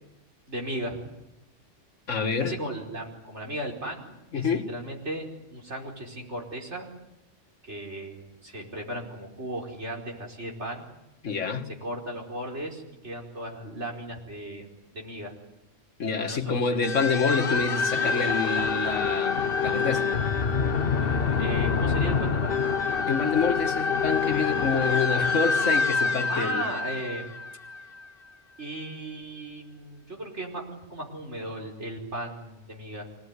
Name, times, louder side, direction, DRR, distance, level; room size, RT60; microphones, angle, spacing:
voice 1, 0.5-1.0 2.4-6.9 7.6-10.9 11.8-15.3 16.0-16.6 17.0-17.1 21.4-22.6 26.3-27.3 28.6-33.1, right 1 dB, 65° right, 0 dB, 5.4 m, -36 dB
voice 2, 2.1-2.6 4.3-4.7 11.2-11.7 16.0-20.1 23.1-26.6, left 5 dB, 85° left, 4 dB, 2.1 m, -27 dB
sound 1, 16.8-28.0, left 5 dB, 50° left, 1.3 m, -26 dB
26.0 x 19.5 x 9.8 m, 0.96 s
omnidirectional pair, 1.2 m